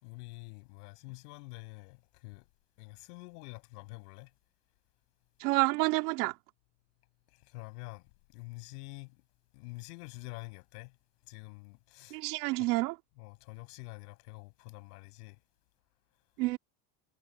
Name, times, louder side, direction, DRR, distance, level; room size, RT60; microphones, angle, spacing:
voice 1, 0.0-2.4 2.8-4.3 7.5-8.0 8.3-9.2 9.5-10.9 11.3-12.2 13.2-15.4, left 27 dB, 75° left, 6.6 m, -47 dB
voice 2, 5.4-6.3 12.1-13.0 16.4-16.6, right 23 dB, 80° right, 2.7 m, -28 dB
cardioid pair, 180°, 46 cm